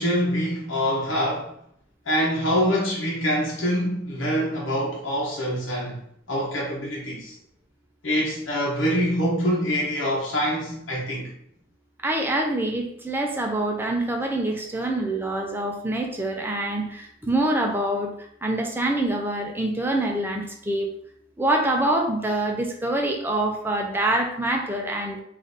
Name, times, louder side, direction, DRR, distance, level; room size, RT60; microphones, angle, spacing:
voice 1, 0.0-1.5 2.1-6.0 6.3-7.3 8.0-11.3, equal, 80° left, 0.9 m, -25 dB
voice 2, 12.0-18.1 18.4-20.9 21.4-25.2, right 1 dB, 10° right, 0.6 m, -25 dB
3.8 x 2.6 x 3.9 m
head